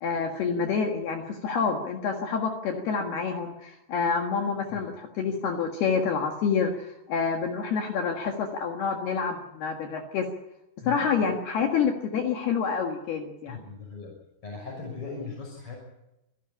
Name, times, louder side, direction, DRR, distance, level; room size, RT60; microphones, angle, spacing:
voice 1, 0.0-10.3 10.9-13.6, left 5 dB, 60° left, 2 dB, 3.3 m, -28 dB
voice 2, 4.4-4.9 10.8-11.1 13.5-14.1 14.4-15.8, left 4 dB, 25° left, -2 dB, 6.6 m, -39 dB
26.5 x 12.0 x 9.9 m, 0.92 s
omnidirectional pair, 5.6 m